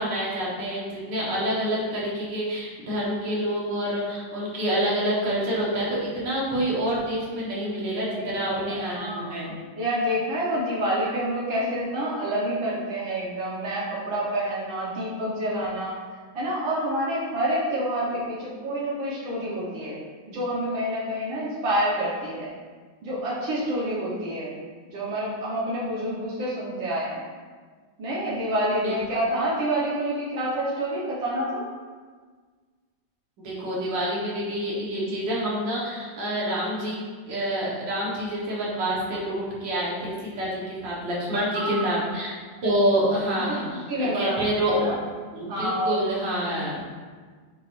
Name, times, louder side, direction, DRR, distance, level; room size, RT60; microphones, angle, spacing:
voice 1, 0.0-9.6 28.8-28.9 33.4-37.0 37.3-42.3 42.6-44.9 45.3-46.9, equal, 70° right, -6 dB, 2.1 m, -27 dB
voice 2, 8.1-9.3 9.8-16.0 16.4-20.0 20.3-22.5 23.0-24.6 24.8-27.3 28.0-31.6 41.5-41.8 43.9-44.4 44.6-44.9 45.5-46.1, right 1 dB, 90° right, -7 dB, 2.0 m, -28 dB
8.6 x 4.8 x 2.6 m, 1.5 s
omnidirectional pair, 2.0 m